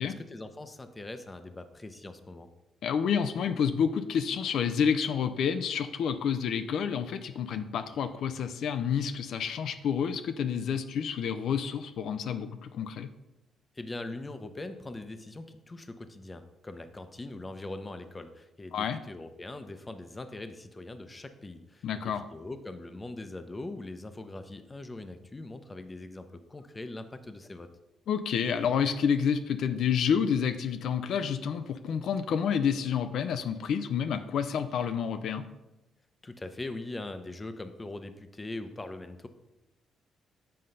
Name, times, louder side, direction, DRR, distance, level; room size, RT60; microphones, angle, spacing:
voice 1, 0.0-2.5 13.7-27.7 36.2-39.3, left 2 dB, 20° left, 9 dB, 0.7 m, -41 dB
voice 2, 2.8-13.1 18.7-19.0 21.8-22.2 28.1-35.5, left 7 dB, 70° left, 9 dB, 0.4 m, -29 dB
7.7 x 3.8 x 5.4 m, 0.97 s
cardioid pair, 90°, 0 cm